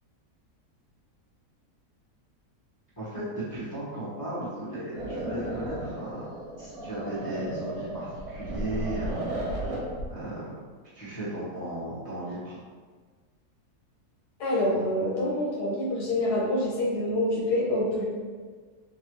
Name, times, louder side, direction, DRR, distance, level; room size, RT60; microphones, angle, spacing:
voice 1, 3.0-6.3 6.6-9.3 10.1-10.5 10.9-12.6, right 1 dB, 15° left, -12 dB, 1.1 m, -35 dB
sound 1, 4.9-10.1, right 1 dB, 70° right, 1.2 m, -34 dB
voice 2, 14.4-18.1, left 1 dB, 90° left, -5 dB, 1.5 m, -26 dB
3.4 x 3.1 x 3.1 m, 1.5 s
omnidirectional pair, 1.6 m